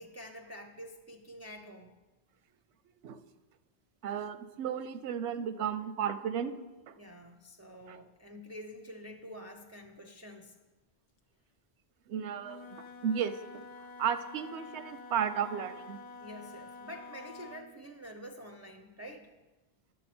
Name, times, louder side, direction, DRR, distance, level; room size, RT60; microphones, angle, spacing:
voice 1, 0.0-1.9 7.0-10.6 16.2-19.3, equal, 25° right, 3 dB, 0.4 m, -47 dB
voice 2, 4.0-6.5 6.9-7.0 7.9-8.0 12.1-13.6 14.0-16.0, right 8 dB, 85° right, 12 dB, 0.9 m, -34 dB
Wind instrument woodwind instrument, 12.4-17.8, left 4 dB, 90° left, 1.0 m, -48 dB
10.5 x 6.8 x 4.3 m, 1.1 s
omnidirectional pair, 1.1 m